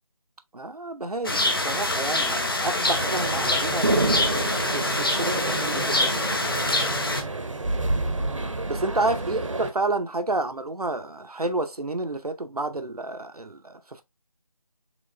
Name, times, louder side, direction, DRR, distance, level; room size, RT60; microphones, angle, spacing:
voice 1, 0.5-4.3 4.7-6.1 8.7-14.0, right 2 dB, 90° right, 0.7 m, -30 dB
sound 1, 1.2-7.2, left 2 dB, 40° left, 0.8 m, -25 dB
sound 2, 2.9-9.7, right 2 dB, 55° right, 0.8 m, -28 dB
5.1 x 3.5 x 2.2 m
figure-of-eight pair, 165°, 19 cm